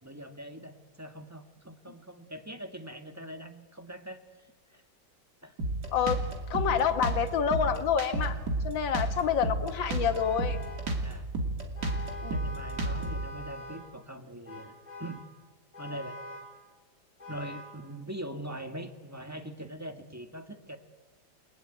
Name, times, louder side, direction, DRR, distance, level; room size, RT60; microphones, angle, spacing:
voice 1, 0.0-4.8 5.4-5.5 8.9-9.0 11.0-11.3 12.3-15.2 15.8-16.2 17.3-20.8, right 1 dB, 10° right, 6 dB, 1.4 m, -42 dB
Drum kit, 5.6-13.3, right 2 dB, 60° right, 3.3 m, -31 dB
voice 2, 5.9-6.2 6.5-8.4 8.6-10.6 12.2-12.3, left 8 dB, 85° left, 9 dB, 2.1 m, -28 dB
Vehicle horn car horn honking, 10.1-11.0 11.8-13.9 14.5-15.3 15.7-16.6 17.2-17.8, left 1 dB, 20° left, 4.3 m, -44 dB
29.0 x 19.0 x 9.1 m, 1.4 s
omnidirectional pair, 2.0 m